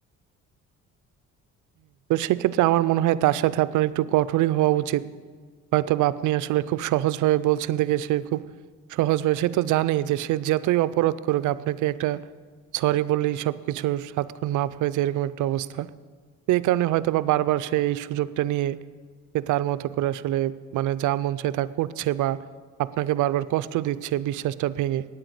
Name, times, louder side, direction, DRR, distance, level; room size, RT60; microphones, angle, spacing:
voice 1, 2.1-5.1 5.7-8.5 8.9-12.2 12.8-15.9 16.5-18.8 19.3-22.4 22.8-25.1, right 14 dB, 80° right, 17 dB, 0.5 m, -24 dB
9.0 x 9.0 x 8.1 m, 1.5 s
cardioid pair, 90°, 30 cm